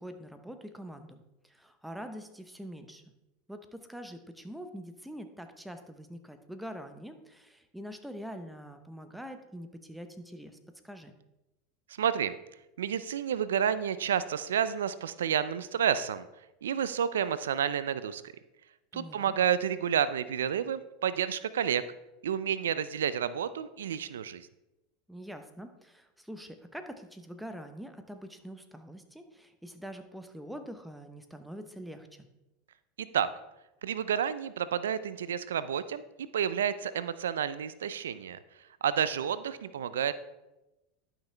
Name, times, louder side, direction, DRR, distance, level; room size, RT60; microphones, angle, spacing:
voice 1, 0.0-3.0 3.5-10.6 10.8-11.1 18.9-19.3 25.1-32.3, equal, ahead, 7 dB, 0.8 m, -44 dB
voice 2, 11.9-12.3 12.8-16.3 16.6-18.2 18.9-21.8 22.2-24.5 33.0-33.3 33.8-36.0 36.3-38.4 38.8-40.1, right 8 dB, 90° right, 15 dB, 0.4 m, -30 dB
11.5 x 5.9 x 3.3 m, 0.98 s
hypercardioid pair, 105°, 0 cm